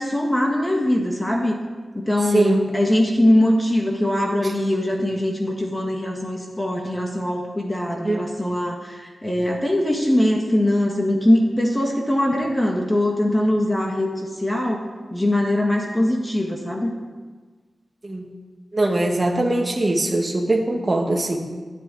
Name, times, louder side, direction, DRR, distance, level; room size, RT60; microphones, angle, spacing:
voice 1, 0.0-1.6 1.9-14.8 15.1-16.9, left 1 dB, 15° left, 1 dB, 1.7 m, -21 dB
voice 2, 2.3-2.6 8.0-8.3 18.0-18.3 18.7-21.4, right 2 dB, 25° right, 1 dB, 1.9 m, -21 dB
11.5 x 10.5 x 8.5 m, 1.4 s
wide cardioid pair, 140°, 0 cm